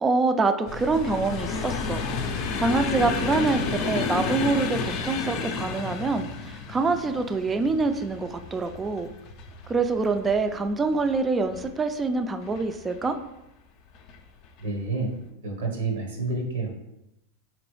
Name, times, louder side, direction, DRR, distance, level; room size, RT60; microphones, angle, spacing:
voice 1, 0.0-2.0 2.4-9.1 9.7-13.2, right 3 dB, 20° right, 8 dB, 0.3 m, -25 dB
sound 1, 0.7-11.8 12.4-13.1 13.9-14.2 14.4-14.6, left 4 dB, 50° left, 0.4 m, -31 dB
voice 2, 14.6-15.1 15.4-16.7, right 3 dB, 85° right, 1 dB, 1.0 m, -29 dB
3.8 x 3.0 x 3.1 m, 0.88 s
hypercardioid pair, 120°, 0 cm